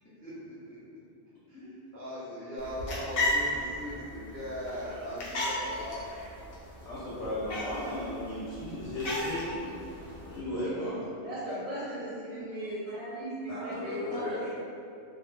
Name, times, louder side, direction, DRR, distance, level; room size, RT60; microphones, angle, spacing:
voice 1, 0.0-1.0 1.3-6.0, equal, 25° left, -12 dB, 0.3 m, -40 dB
sound 1, 2.6-10.4, left 1 dB, 60° left, 0.7 m, -35 dB
voice 2, 6.8-9.7 10.2-11.1 11.5-11.6 12.6-12.7 13.5-14.5, left 1 dB, 85° left, -11 dB, 1.0 m, -36 dB
voice 3, 11.2-14.5, right 1 dB, 70° right, -9 dB, 0.3 m, -37 dB
2.4 x 2.0 x 3.0 m, 2.5 s
omnidirectional pair, 1.2 m